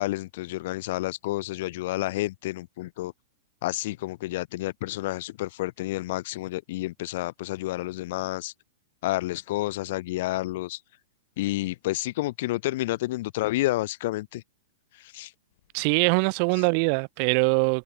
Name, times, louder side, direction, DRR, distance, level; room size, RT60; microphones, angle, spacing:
voice 1, 0.0-3.1 3.6-8.5 9.0-10.8 11.4-14.4 14.9-15.3 16.5-16.7, left 17 dB, 50° left, 4.0 m, -30 dB
voice 2, 15.7-17.8, right 39 dB, 40° right, 1.4 m, -23 dB
supercardioid pair, 160°, 0 cm